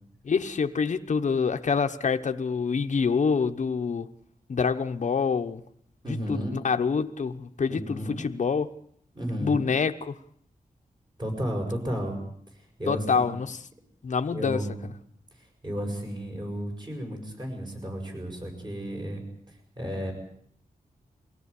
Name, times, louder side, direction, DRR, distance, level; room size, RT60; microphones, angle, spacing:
voice 1, 0.2-4.1 4.5-5.6 6.1-8.7 9.4-10.2 12.9-13.6 14.0-14.7, left 5 dB, 60° left, 0.9 m, -26 dB
voice 2, 6.0-6.5 7.7-8.2 9.1-9.6 11.2-12.2 12.8-13.3 14.3-14.8 15.6-19.2 19.8-20.1, equal, 30° right, 6.5 m, -32 dB
23.5 x 16.5 x 8.3 m
wide cardioid pair, 130°, 14 cm